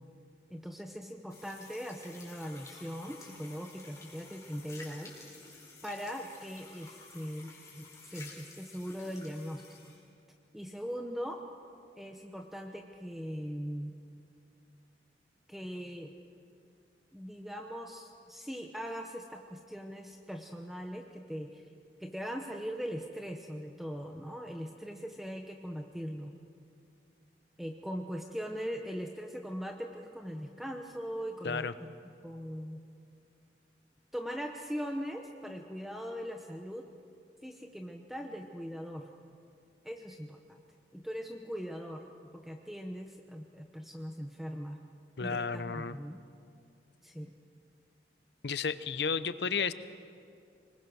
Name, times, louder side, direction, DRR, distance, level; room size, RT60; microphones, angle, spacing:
voice 1, 0.5-5.3 5.8-9.6 10.5-11.4 12.0-13.9 15.5-16.1 17.1-21.6 22.0-26.3 27.6-32.8 34.1-36.9 37.4-39.1 39.8-40.6 40.9-42.0 42.3-44.8 45.2-46.2 47.0-47.3, equal, ahead, 3 dB, 0.9 m, -40 dB
sound 1, 1.3-10.0, left 3 dB, 20° left, 4.1 m, -52 dB
voice 2, 45.2-46.0 48.4-49.7, left 5 dB, 70° left, 14 dB, 0.7 m, -32 dB
24.5 x 21.0 x 6.2 m, 2.4 s
head